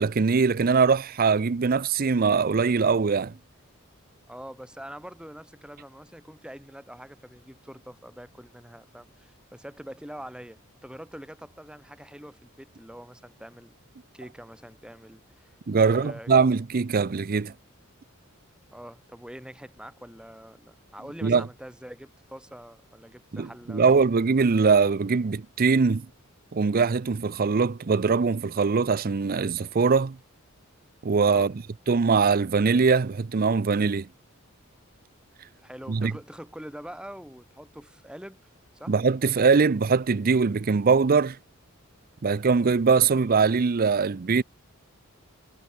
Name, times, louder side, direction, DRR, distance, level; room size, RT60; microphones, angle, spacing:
voice 1, 0.0-3.3 15.7-17.5 21.2-21.5 23.3-26.1 26.5-30.2 31.0-31.5 31.9-34.1 35.9-36.1 38.9-41.4 42.2-44.4, right 5 dB, 45° right, 0.5 m, -22 dB
voice 2, 4.3-13.7 14.1-16.3 18.7-23.9 31.3-31.5 35.6-38.4 38.7-38.9, equal, 5° right, 5.1 m, -44 dB
head